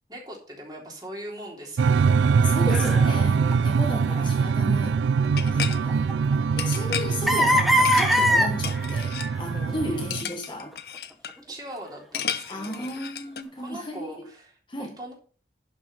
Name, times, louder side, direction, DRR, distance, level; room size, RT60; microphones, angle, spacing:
voice 1, 0.1-2.2 2.8-3.2 3.9-4.4 7.1-7.4 9.8-10.1 11.5-12.9 13.6-14.6 15.0-15.1, right 1 dB, 20° right, 3.3 m, -41 dB
sound 1, 1.8-10.2, right 5 dB, 90° right, 0.4 m, -23 dB
voice 2, 2.4-5.0 5.5-6.1 6.5-10.7 12.5-14.1 14.7-14.9, left 1 dB, 25° left, 1.2 m, -34 dB
sound 2, 2.7-3.1 3.5-3.6 4.1-4.2 5.5-6.3 6.8-6.9 7.3-9.7 10.7-10.8, equal, ahead, 1.1 m, -22 dB
sound 3, 5.3-5.8 6.6-7.2 7.8-8.4 8.6-9.3 10.1-11.4 12.1-13.4, left 8 dB, 60° left, 0.8 m, -33 dB
11.0 x 6.1 x 5.5 m
head